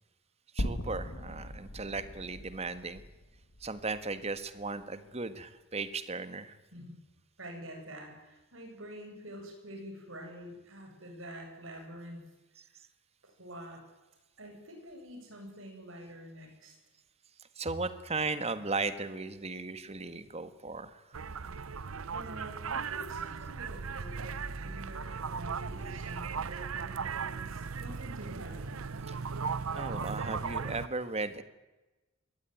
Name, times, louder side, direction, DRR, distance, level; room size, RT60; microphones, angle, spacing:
voice 1, 0.5-3.0 3.6-6.6 12.6-12.7 17.4-21.2 29.1-29.2 29.7-31.4, right 3 dB, 30° right, 11 dB, 1.5 m, -36 dB
sound 1, 0.6-4.8, equal, 70° left, 2.4 m, -40 dB
voice 2, 7.4-12.2 13.2-13.8 14.4-16.7 22.1-28.8, equal, 70° right, 3 dB, 7.6 m, -47 dB
sound 2, 21.1-30.9, right 5 dB, 90° right, 0.8 m, -37 dB
23.0 x 18.0 x 9.3 m, 1.1 s
head